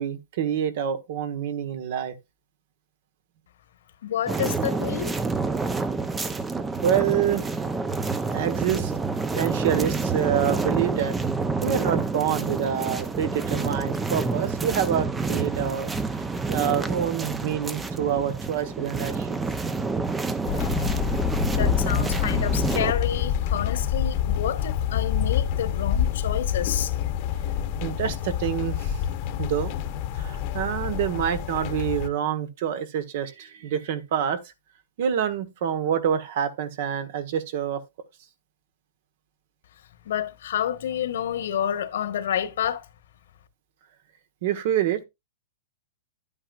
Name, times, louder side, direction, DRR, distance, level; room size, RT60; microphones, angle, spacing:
voice 1, 0.0-2.1 6.8-7.6 8.3-8.9 9.3-11.2 11.6-15.9 16.5-19.4 27.8-29.0 29.4-29.7 30.1-34.4 35.0-37.8 44.4-45.0, right 9 dB, 55° right, 1.3 m, -27 dB
voice 2, 4.0-5.1 21.5-27.0 40.0-42.9, left 10 dB, 70° left, 1.3 m, -29 dB
sound 1, 4.3-22.9, right 4 dB, 10° right, 0.6 m, -28 dB
sound 2, 20.5-32.1, left 9 dB, 40° left, 1.0 m, -27 dB
10.5 x 8.7 x 2.5 m
hypercardioid pair, 145°, 0 cm